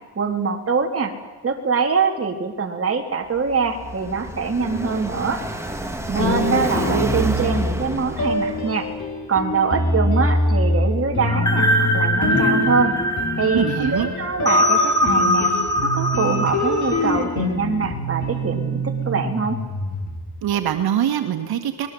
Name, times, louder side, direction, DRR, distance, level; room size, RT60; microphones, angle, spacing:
voice 1, 0.2-1.1 1.4-5.4 6.1-8.9 9.3-13.0 13.4-15.5 15.8-19.6, right 5 dB, 40° right, 2 dB, 3.9 m, -23 dB
Car passing by, 3.4-8.9, right 1 dB, 5° right, 3.2 m, -27 dB
sound 1, 6.2-7.7 8.2-20.4, left 1 dB, 50° left, 6.8 m, -24 dB
sound 2, 11.3-17.2, equal, 10° left, 4.0 m, -22 dB
voice 2, 13.5-14.1 20.4-21.9, right 10 dB, 85° right, 6 dB, 1.9 m, -23 dB
24.5 x 21.5 x 8.0 m, 1.3 s
cardioid pair, 95°, 37 cm